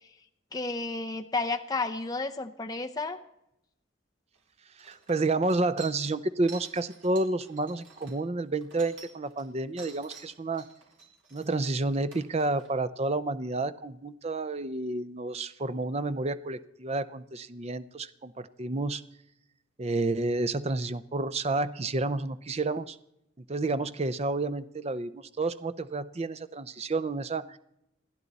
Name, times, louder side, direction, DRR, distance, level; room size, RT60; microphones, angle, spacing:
voice 1, 0.5-3.2, left 3 dB, 20° left, 5 dB, 0.7 m, -32 dB
sound 1, 4.3-4.4 4.8-9.4 9.8-12.7, right 5 dB, 70° right, 3.9 m, -49 dB
voice 2, 4.8-10.6 11.3-19.0 19.8-23.0 23.5-27.6, right 2 dB, 30° right, 13 dB, 0.6 m, -30 dB
29.0 x 10.5 x 4.1 m, 0.83 s
head